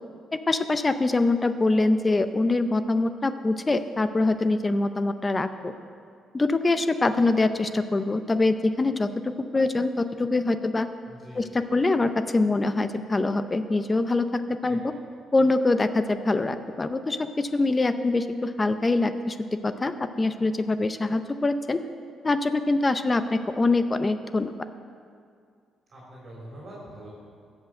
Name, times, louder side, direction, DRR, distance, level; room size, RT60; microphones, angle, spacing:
voice 1, 0.5-5.7 6.3-10.9 11.4-11.5 11.7-14.9 15.3-19.4 19.6-21.8 22.2-24.5, left 2 dB, 25° left, 10 dB, 0.6 m, -24 dB
voice 2, 11.1-11.7 14.6-14.8 25.9-27.1, equal, 40° right, -5 dB, 3.6 m, -44 dB
14.0 x 5.8 x 7.7 m, 2.2 s
cardioid pair, 90°, 0 cm